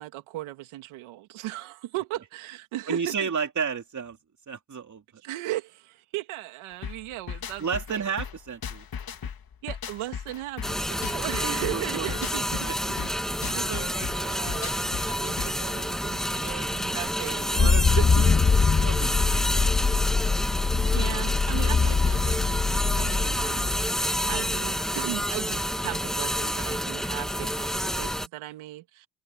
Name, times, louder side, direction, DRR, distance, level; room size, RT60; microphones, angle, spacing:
voice 1, 0.0-3.3 5.2-8.0 9.6-13.1 13.5-14.7 15.1-18.2 20.9-29.1, right 16 dB, 90° right, 2.5 m, -37 dB
voice 2, 2.9-4.2 4.5-5.0 7.6-8.9 9.2-9.3 11.4-12.2 12.7-12.8 17.5-17.8 18.8-19.8, right 6 dB, 35° right, 3.1 m, -32 dB
sound 1, 6.8-15.7, left 7 dB, 50° left, 2.5 m, -37 dB
sound 2, 10.6-28.3, equal, ahead, 1.9 m, -29 dB
sound 3, 17.6-24.6, left 4 dB, 25° left, 1.7 m, -23 dB
cardioid pair, 80°, 47 cm